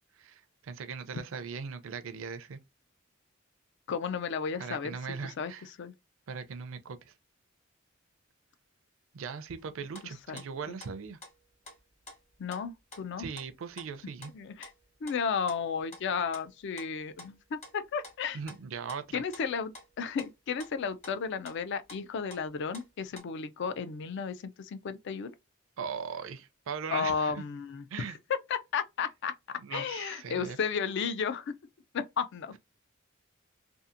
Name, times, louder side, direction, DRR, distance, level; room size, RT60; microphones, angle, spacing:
voice 1, 0.2-2.6 4.6-5.7 6.3-7.1 9.1-11.2 13.2-14.3 18.3-19.2 25.8-27.4 27.9-28.2 29.6-30.6, right 6 dB, 70° right, 0.4 m, -39 dB
voice 2, 3.9-5.0 5.2-5.9 10.3-10.8 12.4-13.3 14.3-14.7 15.0-18.4 19.1-25.3 26.9-31.5 31.9-32.6, left 6 dB, 60° left, 0.4 m, -33 dB
sound 1, 9.6-9.7 9.9-22.5 22.7-23.2, left 2 dB, 35° left, 1.0 m, -51 dB
2.7 x 2.4 x 2.4 m
head